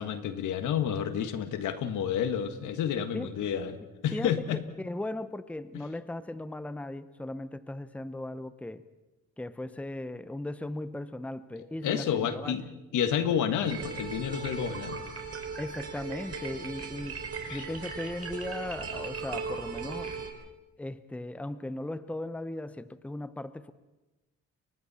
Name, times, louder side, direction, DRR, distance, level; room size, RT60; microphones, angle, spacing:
voice 1, 0.0-3.8 4.0-4.6 11.8-12.7 12.9-15.0 17.4-17.6, left 8 dB, 80° left, 8 dB, 1.8 m, -30 dB
voice 2, 4.1-8.8 9.4-12.6 15.6-17.2 17.5-20.1 20.8-23.7, left 1 dB, 5° left, 13 dB, 0.8 m, -37 dB
sound 1, 13.6-20.3, right 5 dB, 50° right, 4.3 m, -38 dB
30.0 x 24.0 x 4.3 m, 1.1 s
cardioid pair, 90°, 30 cm